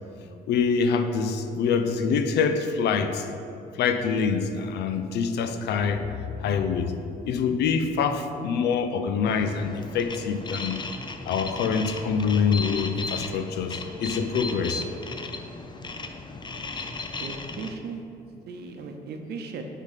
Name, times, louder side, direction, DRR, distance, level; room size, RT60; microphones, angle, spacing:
voice 1, 0.5-3.3 3.8-6.9 7.3-10.8 11.3-14.8, left 6 dB, 80° left, 8 dB, 0.5 m, -25 dB
sound 1, 9.3-17.7, left 3 dB, 25° left, 0.5 m, -36 dB
voice 2, 17.2-18.0 18.5-19.6, right 4 dB, 75° right, 4 dB, 0.8 m, -37 dB
7.2 x 3.7 x 5.7 m, 2.6 s
cardioid pair, 80°, 17 cm